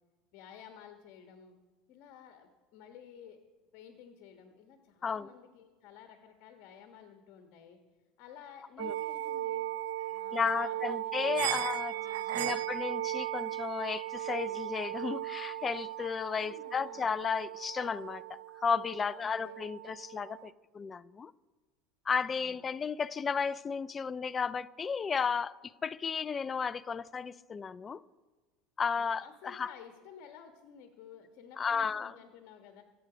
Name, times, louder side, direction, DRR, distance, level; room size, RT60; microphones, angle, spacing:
voice 1, 0.3-1.6 1.9-3.4 3.7-7.8 8.2-9.7 10.1-11.6 11.9-12.6 16.3-17.1 19.0-19.6 22.2-22.8 29.0-32.8, left 8 dB, 50° left, 1.4 m, -53 dB
sound 1, 8.8-20.5, right 14 dB, 85° right, 0.5 m, -37 dB
voice 2, 10.3-11.9 12.3-21.3 22.1-25.5 25.8-28.0 28.8-29.7 31.6-32.1, left 6 dB, 20° left, 0.4 m, -33 dB
23.5 x 8.1 x 5.0 m
cardioid pair, 160°, 0 cm